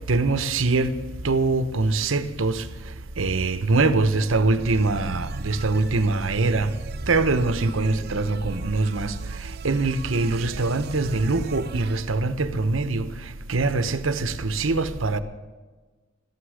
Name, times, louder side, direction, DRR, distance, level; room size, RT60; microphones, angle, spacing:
voice 1, 0.1-0.9 1.2-2.6 3.2-6.7 7.1-9.1 9.6-13.1 13.5-15.2, right 3 dB, 75° right, 1.0 m, -23 dB
sound 1, 4.6-12.1, right 4 dB, 50° right, 0.5 m, -37 dB
13.5 x 11.5 x 6.5 m
head